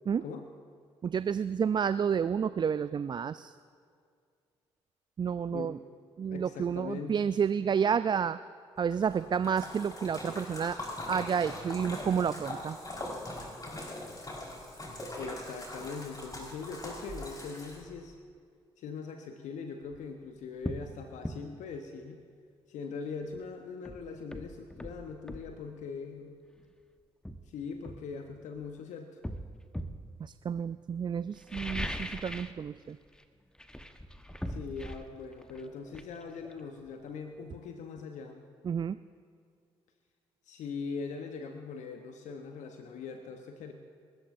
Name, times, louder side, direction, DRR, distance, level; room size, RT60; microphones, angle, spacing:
voice 1, 1.0-3.5 5.2-5.8 6.2-8.4 8.8-10.8 11.1-12.8 30.2-33.0 38.6-39.0, right 7 dB, 35° right, 15 dB, 0.4 m, -30 dB
voice 2, 6.3-7.3 15.0-18.2 18.8-22.2 22.7-26.3 27.5-29.2 34.5-38.4 40.4-43.7, left 5 dB, 65° left, 5 dB, 1.0 m, -41 dB
Splash splatter, 8.9-18.0, left 1 dB, 30° left, 4.7 m, -41 dB
sound 1, 19.8-20.0 20.6-20.9 21.2-21.4 23.3-23.4 23.9-25.5 26.6-26.7 27.2-28.6 29.2-30.0 31.3-32.6 32.9-33.2 33.5-37.1 37.4-37.5, equal, 5° left, 1.2 m, -40 dB
28.5 x 14.0 x 2.6 m, 2.2 s
figure-of-eight pair, 40°, 14 cm